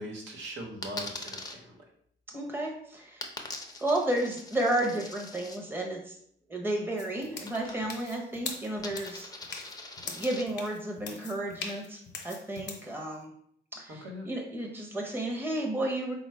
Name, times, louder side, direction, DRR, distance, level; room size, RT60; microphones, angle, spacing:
voice 1, 0.0-1.8 13.9-14.3, equal, 70° right, -1 dB, 1.2 m, -41 dB
Coin (dropping), 0.8-1.6 3.2-5.6 7.4-8.1 8.4-10.4, left 2 dB, 20° left, 0.6 m, -42 dB
voice 2, 2.3-3.2 3.8-6.2 6.5-9.7 10.0-13.3 13.7-16.1, right 1 dB, 10° right, 0 dB, 0.9 m, -32 dB
sound 1, 7.0-12.9, left 5 dB, 60° left, 0.8 m, -42 dB
3.7 x 2.4 x 4.4 m, 0.66 s
cardioid pair, 90°, 20 cm